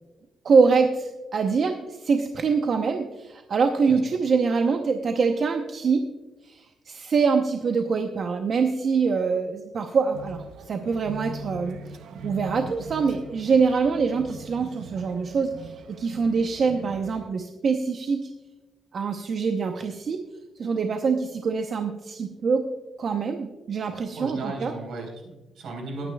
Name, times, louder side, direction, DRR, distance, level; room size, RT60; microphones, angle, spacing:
voice 1, 0.4-6.1 6.4-18.3 18.9-20.2 20.6-22.7 23.0-24.7, right 5 dB, 45° right, 5 dB, 0.7 m, -24 dB
sound 1, 10.1-17.3, right 3 dB, 90° right, 0.8 m, -41 dB
voice 2, 24.1-26.1, right 2 dB, 70° right, 1 dB, 4.1 m, -36 dB
21.0 x 9.6 x 2.3 m, 1.2 s
cardioid pair, 155°, 0 cm